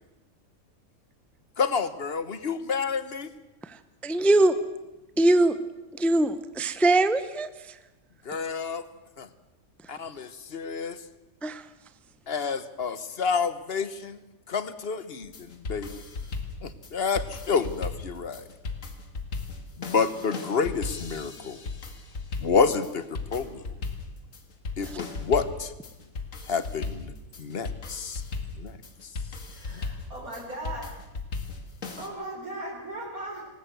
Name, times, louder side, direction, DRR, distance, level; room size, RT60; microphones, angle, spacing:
voice 1, 1.6-3.3 8.2-8.8 9.2-9.3 9.9-11.0 12.3-14.2 14.5-16.0 16.6-18.4 19.8-21.6 22.4-23.0 23.3-23.7 24.8-25.7 26.5-27.1 27.4-28.2 28.6-28.8, left 5 dB, 45° left, 13 dB, 1.2 m, -29 dB
voice 2, 4.0-4.5 5.2-5.6 5.9-7.5 11.4-11.6, right 2 dB, ahead, 12 dB, 0.6 m, -22 dB
sound 1, 15.2-32.1, left 3 dB, 65° left, 2.2 m, -37 dB
voice 3, 29.5-30.9 32.0-33.5, right 1 dB, 90° right, -4 dB, 5.1 m, -38 dB
19.5 x 18.5 x 8.0 m, 1.0 s
omnidirectional pair, 1.5 m